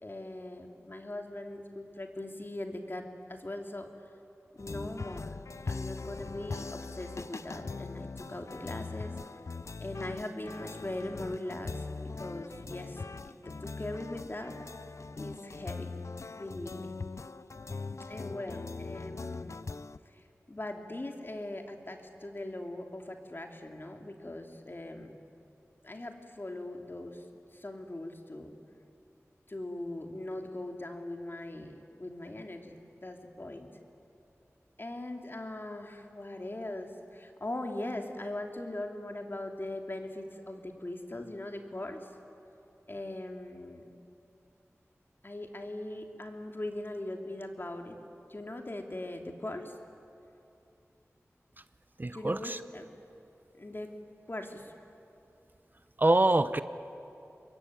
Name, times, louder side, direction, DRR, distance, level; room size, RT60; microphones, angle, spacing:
voice 1, 0.0-3.9 4.6-5.4 5.7-9.1 9.8-14.5 15.2-15.9 16.4-16.9 18.1-19.6 20.0-25.1 25.8-27.2 27.5-28.6 29.5-33.7 34.8-42.1 42.9-43.8 45.2-48.0 48.3-49.7 52.1-52.9 53.6-53.9 54.3-54.7, left 1 dB, 45° left, 3 dB, 2.9 m, -40 dB
sound 1, 4.6-20.0, left 4 dB, 65° left, 0.6 m, -41 dB
voice 2, 52.0-52.6 56.0-56.6, right 2 dB, 35° right, 12 dB, 0.8 m, -25 dB
26.0 x 22.5 x 9.6 m, 2.8 s
wide cardioid pair, 50°, 5 cm